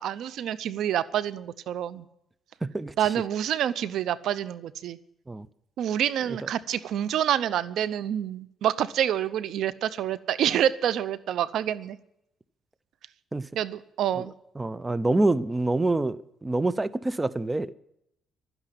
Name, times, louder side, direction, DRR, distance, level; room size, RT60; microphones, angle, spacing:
voice 1, 0.0-2.0 3.0-5.0 5.8-12.0 13.5-14.3, right 10 dB, 75° right, 0.6 m, -27 dB
voice 2, 2.6-2.9 5.3-5.5 13.3-13.5 14.6-17.7, right 2 dB, 15° right, 0.6 m, -26 dB
12.5 x 10.0 x 9.0 m
cardioid pair, 90°, 0 cm